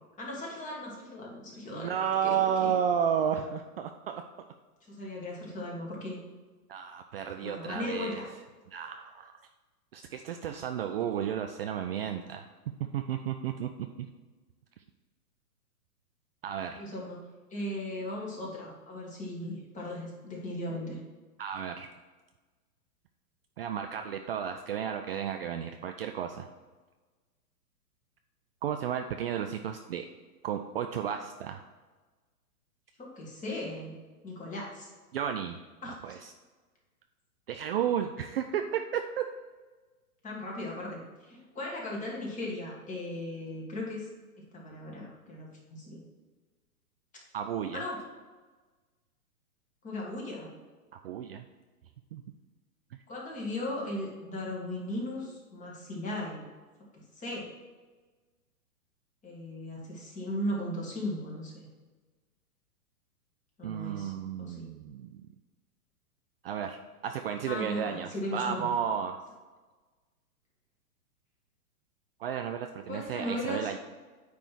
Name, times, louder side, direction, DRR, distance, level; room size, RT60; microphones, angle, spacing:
voice 1, 0.2-1.9 2.2-2.4 2.6-2.7 4.9-6.2 7.4-8.2 16.8-17.2 17.5-21.0 33.0-34.0 34.2-34.9 35.8-36.2 40.2-44.1 44.4-46.0 47.7-48.0 49.8-50.5 53.1-56.4 56.9-57.5 59.2-61.7 63.6-64.1 64.4-64.6 67.5-68.7 72.9-73.7, left 1 dB, 15° left, -3 dB, 2.0 m, -37 dB
voice 2, 1.7-4.2 6.7-8.2 8.7-9.3 9.9-12.4 12.8-14.1 16.4-16.8 21.4-21.9 23.6-26.5 28.6-30.1 30.4-31.6 35.1-35.6 35.9-36.3 37.5-39.2 47.3-47.8 50.9-51.5 52.1-52.2 52.9-53.0 63.6-65.2 66.4-69.2 72.2-73.8, right 8 dB, 45° right, 6 dB, 0.4 m, -33 dB
9.2 x 3.5 x 6.1 m, 1.3 s
hypercardioid pair, 130°, 45 cm